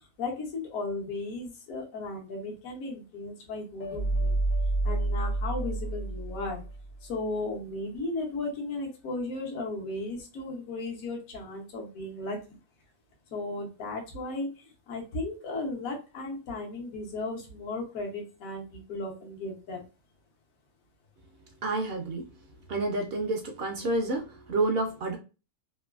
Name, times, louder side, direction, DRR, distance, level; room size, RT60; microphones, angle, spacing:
voice 1, 0.2-4.4 4.8-6.6 7.0-12.6 13.3-19.8, left 2 dB, 80° left, 1.2 m, -35 dB
sound 1, 3.8-7.0, right 2 dB, 60° left, 0.6 m, -29 dB
voice 2, 21.6-22.3 22.7-25.2, right 2 dB, 65° right, 0.6 m, -29 dB
3.1 x 2.2 x 2.2 m
omnidirectional pair, 1.5 m